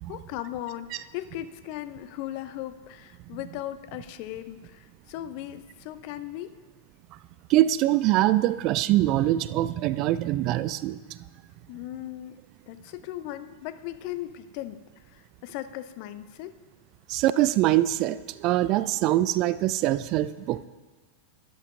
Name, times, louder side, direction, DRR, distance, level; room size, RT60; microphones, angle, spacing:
voice 1, 0.1-6.5 11.7-12.4 12.7-16.6, left 13 dB, 45° left, 12 dB, 0.5 m, -37 dB
voice 2, 7.5-11.0 17.1-20.6, right 14 dB, 40° right, 16 dB, 0.3 m, -23 dB
12.5 x 11.0 x 2.7 m, 1.3 s
figure-of-eight pair, 90°, 0 cm